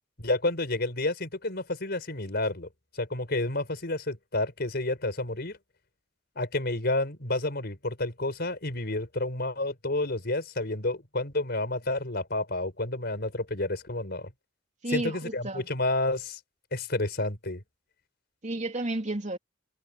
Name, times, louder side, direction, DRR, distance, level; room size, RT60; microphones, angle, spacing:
voice 1, 0.2-2.7 2.9-5.6 6.4-14.3 14.9-16.4 16.7-17.6, left 2 dB, 55° left, 4.7 m, -30 dB
voice 2, 14.8-15.6 18.4-19.4, right 1 dB, 40° right, 3.3 m, -31 dB
head